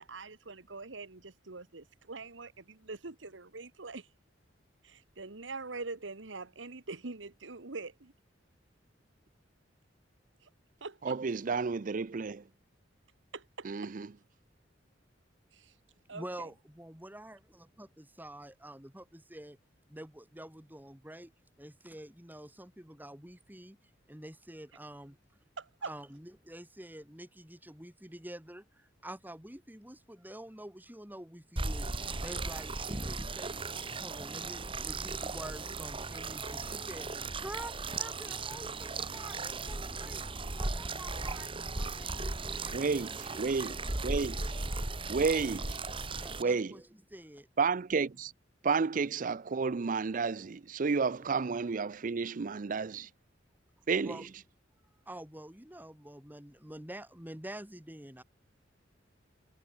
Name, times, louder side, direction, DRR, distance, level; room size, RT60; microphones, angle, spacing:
voice 1, 0.0-4.1 4.8-8.1 10.8-11.1 13.3-13.9 15.6-15.7 16.1-16.2 25.6-25.9, right 3 dB, 85° right, 1.5 m, -43 dB
voice 2, 11.0-12.5 13.6-14.1 42.7-44.4 45.1-45.8 46.4-46.8 47.6-48.3 48.6-53.1 53.9-54.2, right 4 dB, 45° right, 0.5 m, -31 dB
voice 3, 16.1-19.6 19.9-21.3 21.6-25.4 25.8-33.6 34.0-43.9 46.1-47.5 54.0-54.3 55.0-58.2, right 1 dB, 10° right, 3.3 m, -48 dB
sound 1, 31.6-46.4, right 3 dB, 30° right, 1.9 m, -37 dB
head